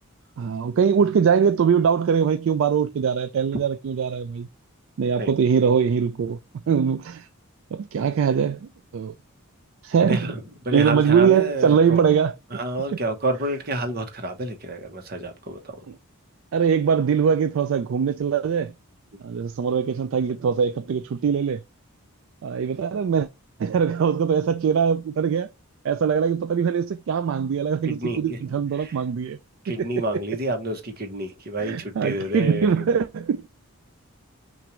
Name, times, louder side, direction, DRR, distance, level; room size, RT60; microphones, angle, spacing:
voice 1, 0.4-4.5 5.0-6.4 6.7-7.3 7.7-9.1 9.8-10.3 10.7-12.3 12.9-13.0 16.5-18.7 19.2-21.6 22.4-23.3 23.6-25.5 25.8-29.4 29.7-30.1 31.6-33.5, right 7 dB, 60° right, 0.3 m, -22 dB
voice 2, 10.1-10.4 10.7-12.0 12.5-15.8 19.1-19.2 27.9-28.4 28.8-28.9 29.6-32.9, right 1 dB, 45° right, 1.1 m, -29 dB
5.9 x 2.6 x 3.1 m
head